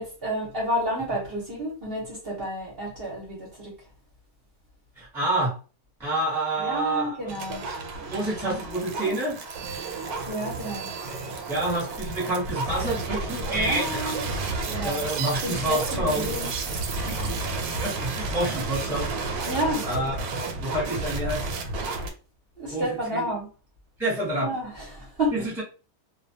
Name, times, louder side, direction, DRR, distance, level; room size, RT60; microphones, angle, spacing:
voice 1, 0.0-3.7 6.6-7.6 8.1-8.5 9.0-9.1 9.7-11.3 13.5-14.3 14.6-15.1 15.4-16.5 16.9-17.4 19.4-19.9 22.6-23.5 24.4-25.3, equal, 45° right, 0.9 m, -31 dB
voice 2, 5.0-5.6 6.0-7.3 8.1-9.4 11.5-14.1 14.8-16.3 17.8-19.1 19.9-20.2 20.6-21.5 22.7-22.8 23.1-23.2 24.0-24.5 25.3-25.6, right 1 dB, ahead, 0.7 m, -28 dB
sound 1, 7.3-22.1, right 3 dB, 85° right, 1.1 m, -31 dB
2.4 x 2.2 x 2.6 m
omnidirectional pair, 1.6 m